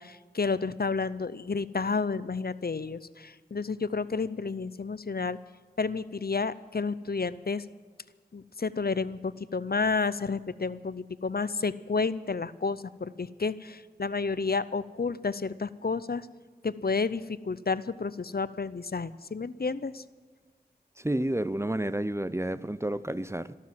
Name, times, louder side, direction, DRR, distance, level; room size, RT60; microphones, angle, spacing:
voice 1, 0.0-5.4 5.8-7.6 8.3-16.3 16.6-20.0, left 4 dB, 65° left, 0.6 m, -31 dB
voice 2, 21.0-23.5, right 1 dB, 15° right, 0.5 m, -30 dB
14.0 x 13.0 x 7.6 m
wide cardioid pair, 45°, 17 cm